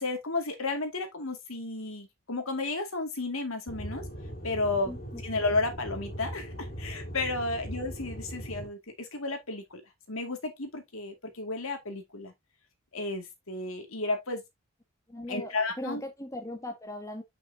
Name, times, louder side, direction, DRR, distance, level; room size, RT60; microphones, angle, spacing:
voice 1, 0.0-4.0 4.4-5.0 5.2-9.8 10.1-12.3 12.9-14.4 15.3-16.0, left 3 dB, 70° left, 2.3 m, -32 dB
Aircraft / Engine, 3.7-8.7, equal, 45° left, 2.8 m, -39 dB
voice 2, 4.9-5.2 15.1-17.2, left 1 dB, 15° left, 1.3 m, -39 dB
7.9 x 6.2 x 2.7 m
head